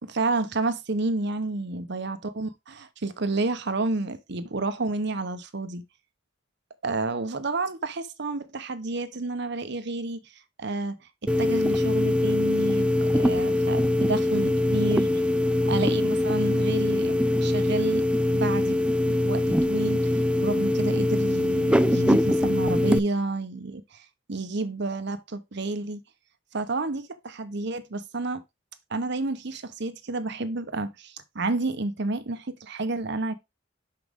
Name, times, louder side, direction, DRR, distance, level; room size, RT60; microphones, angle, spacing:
voice 1, 0.0-5.8 6.8-10.2 10.6-11.0 11.2-15.2 15.7-18.1 18.3-18.8 19.1-24.0 24.3-26.0 26.5-28.4 28.9-33.3, right 3 dB, 60° right, 1.0 m, -30 dB
sound 1, 11.3-23.0, left 1 dB, 5° right, 0.4 m, -23 dB
6.2 x 5.9 x 3.5 m
head